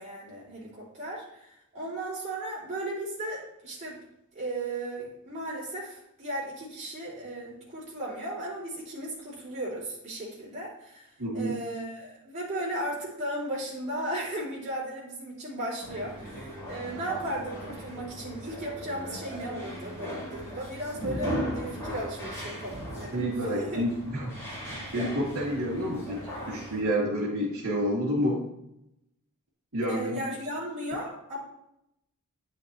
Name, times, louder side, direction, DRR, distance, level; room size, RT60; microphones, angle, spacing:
voice 1, 0.0-4.0 4.3-11.1 11.3-23.8 29.9-31.4, right 1 dB, 30° right, -8 dB, 3.1 m, -36 dB
voice 2, 11.2-11.5 21.0-21.2 23.1-24.3 24.6-28.4 29.7-30.4, equal, 75° right, -9 dB, 3.0 m, -29 dB
sound 1, 15.8-26.8, equal, 15° left, 2.4 m, -38 dB
9.5 x 5.7 x 3.2 m, 0.81 s
head